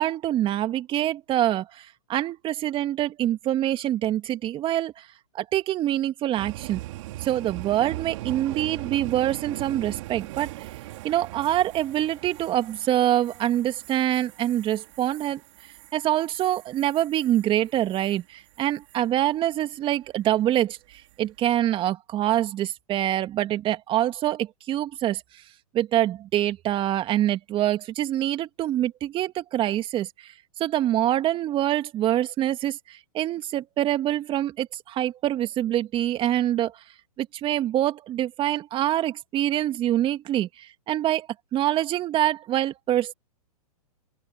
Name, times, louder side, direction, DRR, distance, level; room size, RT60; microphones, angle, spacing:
voice 1, 0.0-4.9 5.3-6.8 7.2-10.5 11.0-15.4 15.9-25.2 25.7-30.3 30.6-36.7 37.2-43.1, right 12 dB, 25° right, 2.3 m, -25 dB
sound 1, 6.4-18.2 18.5-19.0 20.9-21.3, right 17 dB, 50° right, 3.7 m, -40 dB
open air
hypercardioid pair, 125°, 19 cm